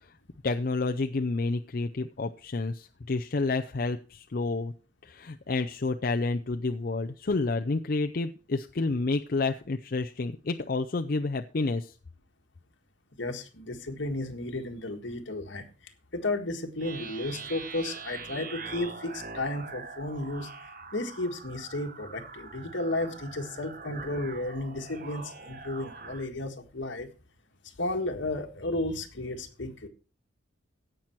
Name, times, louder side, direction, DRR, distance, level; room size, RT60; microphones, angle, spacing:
voice 1, 0.4-4.7 5.0-11.9, left 3 dB, 50° left, 6 dB, 0.5 m, -29 dB
voice 2, 13.2-20.5 20.9-27.1 27.8-29.9, left 2 dB, 75° left, 5 dB, 1.7 m, -33 dB
sound 1, 16.8-26.3, right 4 dB, 45° right, 1.1 m, -43 dB
16.5 x 6.0 x 4.5 m, 0.35 s
head